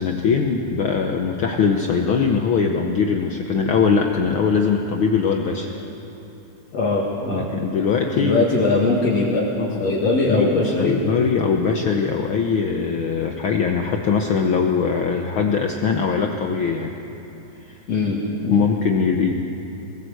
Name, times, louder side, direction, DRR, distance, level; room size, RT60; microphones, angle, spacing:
voice 1, 0.0-5.8 7.3-8.5 9.6-16.9 17.7-17.8 18.4-19.3, left 5 dB, 90° left, 2 dB, 1.1 m, -21 dB
voice 2, 6.7-7.5 8.1-9.4 9.8-11.0 17.9-18.2 18.4-18.6, left 2 dB, 55° left, -4 dB, 3.0 m, -21 dB
21.5 x 16.0 x 8.0 m, 2.9 s
omnidirectional pair, 3.7 m